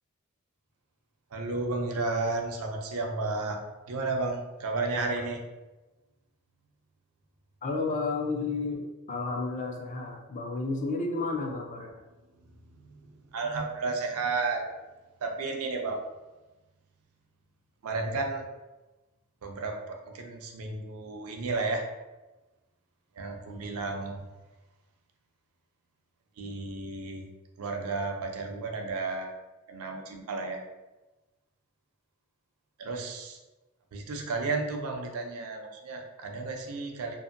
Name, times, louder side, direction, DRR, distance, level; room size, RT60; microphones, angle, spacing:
voice 1, 1.3-5.4 13.3-14.6 15.2-16.0 17.8-18.4 19.4-21.8 23.2-24.2 26.4-27.3 27.6-29.3 29.7-30.6 32.8-33.4 33.9-37.1, right 3 dB, 70° right, 3 dB, 0.5 m, -32 dB
voice 2, 7.6-11.9, left 3 dB, 35° left, 1 dB, 0.4 m, -32 dB
2.6 x 2.5 x 2.5 m, 1.1 s
head